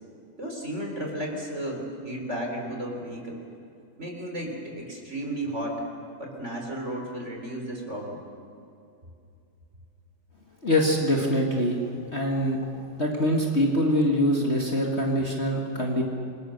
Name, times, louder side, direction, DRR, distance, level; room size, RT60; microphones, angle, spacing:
voice 1, 0.4-3.4 4.0-5.9 6.2-8.2, right 1 dB, 35° right, 0 dB, 4.5 m, -33 dB
voice 2, 10.6-11.8 12.1-12.6 13.0-16.0, equal, 30° left, -1 dB, 2.3 m, -24 dB
28.5 x 23.5 x 6.7 m, 2.6 s
omnidirectional pair, 2.2 m